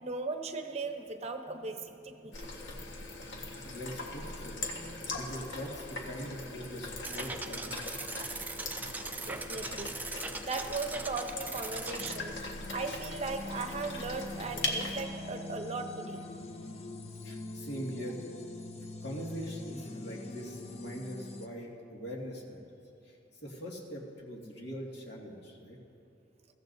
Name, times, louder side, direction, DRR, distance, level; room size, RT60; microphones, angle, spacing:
voice 1, 0.0-2.6 4.7-5.2 8.9-10.0 10.4-12.4 12.7-16.2, right 3 dB, 35° right, 6 dB, 0.8 m, -38 dB
sound 1, 2.3-15.0, left 2 dB, 80° left, 1.5 m, -40 dB
voice 2, 3.6-4.6 5.1-8.0 17.1-18.3 19.0-22.6 23.0-23.2 23.4-25.8, equal, 65° left, -3 dB, 2.1 m, -42 dB
sound 2, 7.0-12.2, right 3 dB, 10° right, 0.4 m, -40 dB
sound 3, 12.0-21.5, left 2 dB, 35° left, 0.7 m, -44 dB
22.0 x 15.0 x 2.7 m, 2.7 s
head